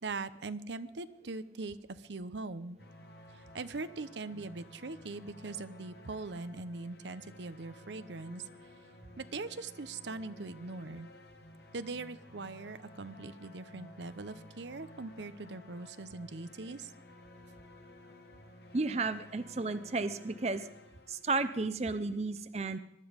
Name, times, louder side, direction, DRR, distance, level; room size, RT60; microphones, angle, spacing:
voice 1, 0.0-2.8 3.3-8.4 9.2-11.1 11.7-16.9, right 3 dB, 85° right, 12 dB, 0.8 m, -41 dB
sound 1, 2.8-21.7, left 1 dB, 65° left, 1.5 m, -54 dB
voice 2, 18.7-20.7 21.1-22.8, right 3 dB, 35° right, 12 dB, 0.6 m, -33 dB
21.5 x 12.5 x 5.2 m, 0.80 s
head